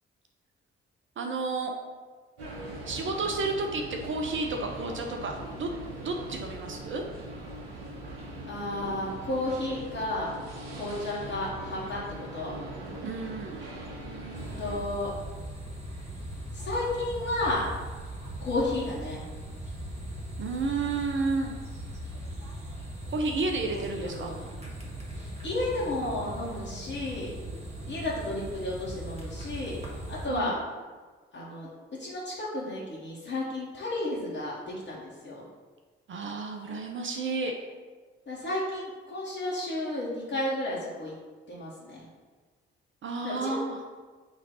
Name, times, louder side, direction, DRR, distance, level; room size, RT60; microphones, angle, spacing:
voice 1, 1.2-1.7 2.9-5.7 6.0-7.0 13.0-13.7 20.4-21.5 23.1-24.3 30.3-30.6 36.1-37.5 43.0-43.8, right 3 dB, 40° right, 3 dB, 0.7 m, -31 dB
sound 1, 2.4-14.8, right 1 dB, 75° right, 0.9 m, -41 dB
voice 2, 8.4-10.3 10.7-12.0 12.3-12.5 13.9-15.1 16.5-17.7 18.4-19.2 23.7-24.5 25.1-27.3 27.8-29.8 30.1-30.6 31.3-31.7 32.0-35.4 38.3-41.1 41.5-42.0 43.2-43.6, left 1 dB, 40° left, -9 dB, 1.8 m, -32 dB
sound 2, 14.3-30.3, right 1 dB, 20° right, 1.8 m, -39 dB
8.3 x 3.2 x 4.1 m, 1.4 s
figure-of-eight pair, 40°, 30 cm